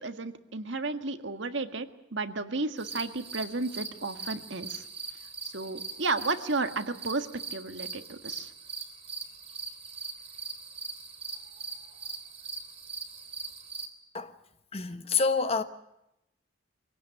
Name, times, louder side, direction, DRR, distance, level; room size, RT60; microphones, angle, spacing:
voice 1, 0.0-4.8 5.4-8.5, right 3 dB, 70° right, 1.8 m, -33 dB
sound 1, 2.8-13.9, right 4 dB, 35° right, 3.3 m, -41 dB
voice 2, 14.7-15.6, left 4 dB, 30° left, 1.3 m, -27 dB
24.5 x 17.5 x 9.8 m
head